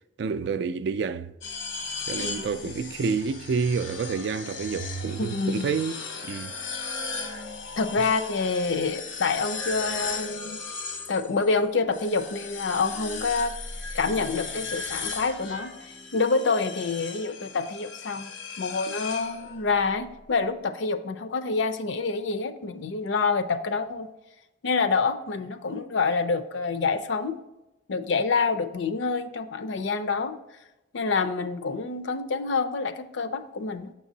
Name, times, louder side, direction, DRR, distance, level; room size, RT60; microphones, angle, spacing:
voice 1, 0.2-1.3 2.1-6.5, right 5 dB, 60° right, 0.3 m, -29 dB
sound 1, 1.4-11.5 11.9-19.8, left 4 dB, 90° left, 1.0 m, -36 dB
voice 2, 5.2-5.7 7.8-10.6 11.1-13.5 13.9-24.1 24.6-27.4 27.9-30.3 30.9-33.9, left 4 dB, 70° left, 0.5 m, -27 dB
6.6 x 6.0 x 2.7 m
head